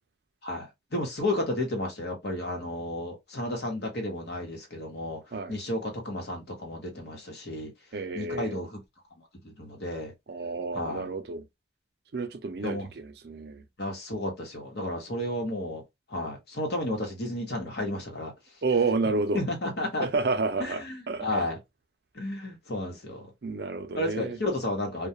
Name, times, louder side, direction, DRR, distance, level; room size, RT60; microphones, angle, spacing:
voice 1, 0.4-5.2 5.5-7.7 8.1-8.8 9.2-10.1 10.7-11.1 12.6-12.9 13.8-15.8 16.1-18.3 19.3-20.1 20.6-21.6 22.1-23.3 24.0-25.1, left 1 dB, 65° left, 1.0 m, -32 dB
voice 2, 7.9-8.6 10.3-11.4 12.1-13.6 18.6-19.4 20.0-21.5 23.4-24.4, right 3 dB, 60° right, 0.5 m, -30 dB
2.3 x 2.2 x 2.7 m
head